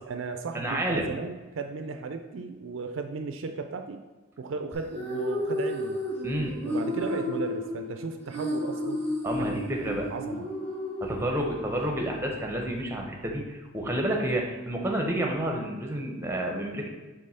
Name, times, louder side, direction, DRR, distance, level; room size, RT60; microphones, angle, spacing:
voice 1, 0.0-4.0 4.4-6.0 6.6-9.0 9.4-9.8 10.1-10.5, right 4 dB, 65° right, 7 dB, 0.4 m, -35 dB
voice 2, 0.5-1.1 6.2-6.6 9.2-10.1 11.0-16.9, right 1 dB, 10° right, 1 dB, 0.8 m, -30 dB
sound 1, 4.7-11.8, left 1 dB, 10° left, 1.4 m, -32 dB
5.3 x 3.7 x 5.5 m, 1.2 s
head